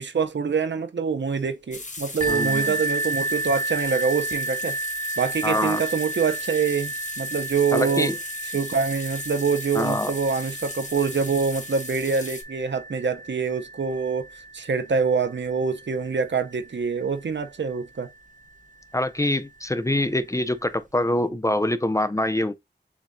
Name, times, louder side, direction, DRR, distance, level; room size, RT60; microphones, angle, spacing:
voice 1, 0.0-4.8 5.2-8.1 8.5-14.3 14.5-18.1, right 5 dB, 80° right, 0.6 m, -25 dB
sound 1, 1.7-12.4, left 2 dB, 40° left, 1.0 m, -37 dB
sound 2, 2.2-17.7 18.5-18.6 19.2-19.3, right 2 dB, 45° right, 0.8 m, -33 dB
voice 2, 2.3-2.8 5.4-5.8 7.7-8.2 9.7-10.1 18.9-22.5, left 1 dB, 15° left, 0.4 m, -24 dB
7.1 x 2.8 x 2.6 m
wide cardioid pair, 70°, 18 cm